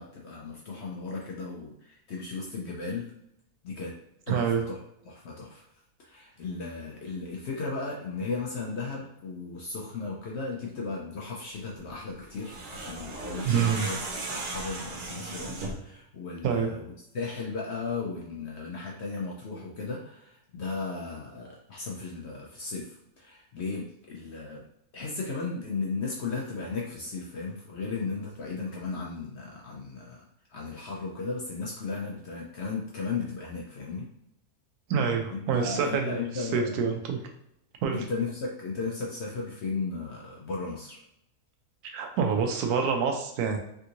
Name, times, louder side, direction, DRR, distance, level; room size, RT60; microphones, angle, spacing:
voice 1, 0.0-3.1 3.6-4.0 4.3-4.8 5.0-5.6 6.0-14.0 14.3-24.7 24.9-34.1 35.3-36.8 37.9-41.0, left 4 dB, 65° left, -3 dB, 0.7 m, -35 dB
voice 2, 4.3-4.6 13.4-13.9 16.4-16.7 34.9-36.2 36.5-37.2 37.8-38.0 41.9-43.6, right 6 dB, 85° right, 3 dB, 1.1 m, -26 dB
sound 1, 12.3-15.9, right 2 dB, 70° right, 0.4 m, -36 dB
3.4 x 2.5 x 2.8 m, 0.76 s
omnidirectional pair, 1.6 m